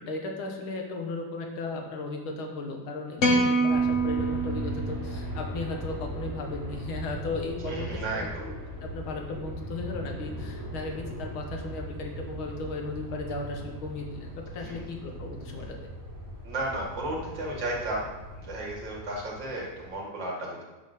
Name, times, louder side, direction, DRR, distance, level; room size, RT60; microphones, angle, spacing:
voice 1, 0.1-8.5 8.8-15.8, left 3 dB, 75° left, 2 dB, 2.1 m, -36 dB
sound 1, 3.2-5.6, right 2 dB, 45° left, 1.3 m, -26 dB
Aircraft, 3.7-19.9, equal, 15° right, 1.0 m, -39 dB
voice 2, 7.7-8.4 14.6-14.8 16.4-18.1 18.4-20.7, right 1 dB, 60° right, -3 dB, 2.6 m, -33 dB
9.9 x 4.0 x 6.5 m, 1.2 s
omnidirectional pair, 2.3 m